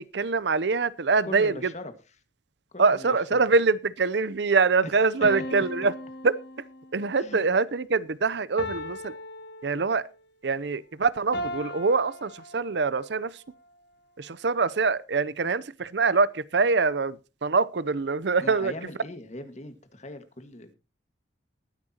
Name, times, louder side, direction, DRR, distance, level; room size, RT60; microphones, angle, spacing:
voice 1, 0.0-1.7 2.8-5.9 6.2-6.4 6.9-9.1 9.6-10.1 10.4-13.4 14.2-18.7, right 4 dB, 65° right, 0.6 m, -24 dB
voice 2, 1.2-1.9 2.7-3.4 5.2-5.3 7.2-7.4 18.4-20.7, left 1 dB, 40° left, 1.7 m, -40 dB
sound 1, 5.2-7.1 8.6-10.2 11.3-13.0, left 1 dB, 65° left, 2.0 m, -37 dB
20.0 x 10.0 x 2.9 m
head